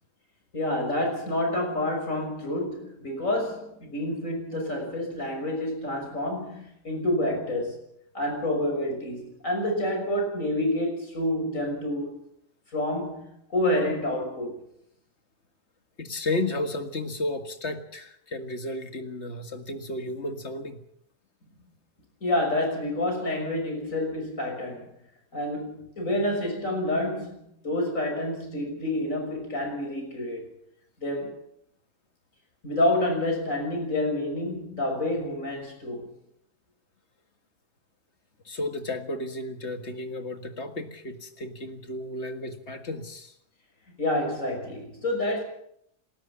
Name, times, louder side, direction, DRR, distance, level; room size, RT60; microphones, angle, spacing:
voice 1, 0.5-7.8 8.1-12.2 12.7-14.6 22.2-24.9 25.3-30.5 31.0-31.4 32.6-36.1 44.0-45.4, left 1 dB, 70° left, 6.7 m, -28 dB
voice 2, 16.0-20.8 38.5-43.3, left 2 dB, 55° left, 2.2 m, -33 dB
29.5 x 13.5 x 7.3 m
omnidirectional pair, 1.4 m